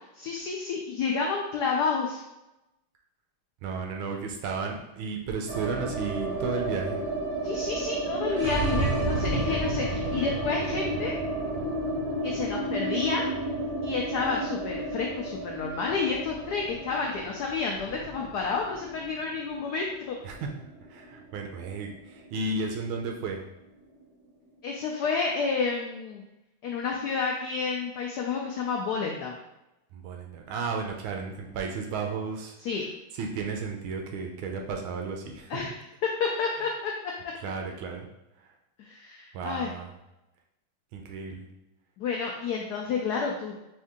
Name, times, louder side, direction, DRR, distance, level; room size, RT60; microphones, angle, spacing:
voice 1, 0.1-2.2 7.4-11.1 12.2-13.2 13.8-20.2 24.6-26.2 26.6-29.4 32.6-32.8 35.5-35.8 36.0-36.9 38.8-39.7 42.0-43.5, left 5 dB, 90° left, 0 dB, 0.8 m, -30 dB
voice 2, 3.6-7.0 20.2-20.5 20.9-23.4 29.9-32.6 33.1-35.5 37.4-38.1 39.3-39.9 40.9-41.4, right 4 dB, 80° right, 2 dB, 1.4 m, -33 dB
sound 1, 5.5-21.6 21.8-21.9 22.2-22.9, right 2 dB, 40° right, 1.2 m, -31 dB
4.5 x 2.6 x 3.6 m, 0.92 s
omnidirectional pair, 2.3 m